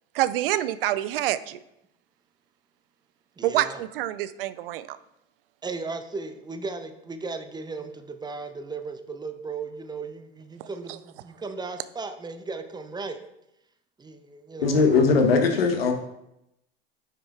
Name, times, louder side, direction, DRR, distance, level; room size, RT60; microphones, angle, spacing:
voice 1, 0.1-1.6 3.4-5.0 10.6-10.7, right 14 dB, 70° right, 15 dB, 0.5 m, -27 dB
voice 2, 3.4-3.8 5.6-13.2 14.0-15.0, right 4 dB, 15° right, 8 dB, 0.6 m, -36 dB
voice 3, 14.6-15.9, left 4 dB, 80° left, 5 dB, 1.1 m, -20 dB
9.4 x 6.1 x 2.4 m, 0.84 s
hypercardioid pair, 80°, 29 cm